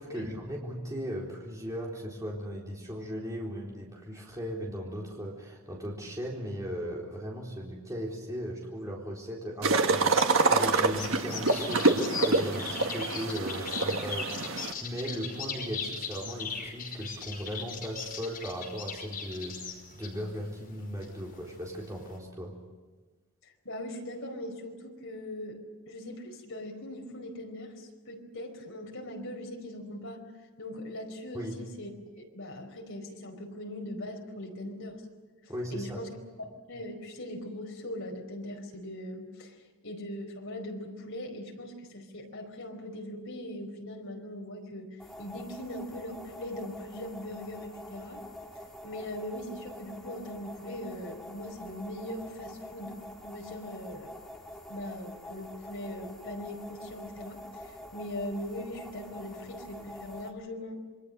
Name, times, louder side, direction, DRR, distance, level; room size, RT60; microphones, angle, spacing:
voice 1, 0.0-22.6 31.3-31.6 35.5-36.0, equal, 15° right, -3 dB, 4.1 m, -37 dB
sound 1, 9.6-14.7, right 3 dB, 65° right, 1.6 m, -26 dB
sound 2, 9.7-22.2, left 5 dB, 40° left, 5.5 m, -39 dB
voice 2, 23.6-25.6 25.9-30.3 30.6-31.9 32.1-35.0 35.7-39.5 39.8-48.2 48.8-54.1 54.7-60.8, left 1 dB, 65° left, 2 dB, 4.8 m, -40 dB
sound 3, 45.0-60.3, left 1 dB, ahead, 2.4 m, -46 dB
27.5 x 23.0 x 6.8 m, 1.3 s
head